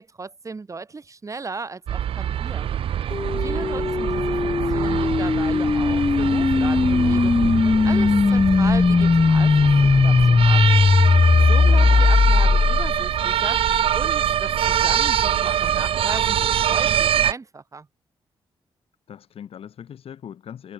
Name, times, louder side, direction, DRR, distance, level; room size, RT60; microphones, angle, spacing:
voice 1, 0.0-2.7 3.4-7.3 7.6-10.8 11.5-13.6 13.9-17.9, right 4 dB, 35° right, 2.6 m, -36 dB
sound 1, 1.9-17.3, right 10 dB, 70° right, 0.5 m, -24 dB
sound 2, 3.1-13.2, left 4 dB, 25° left, 0.3 m, -18 dB
voice 2, 3.5-4.2 19.1-20.7, left 9 dB, 75° left, 6.8 m, -41 dB
cardioid pair, 85°, 10 cm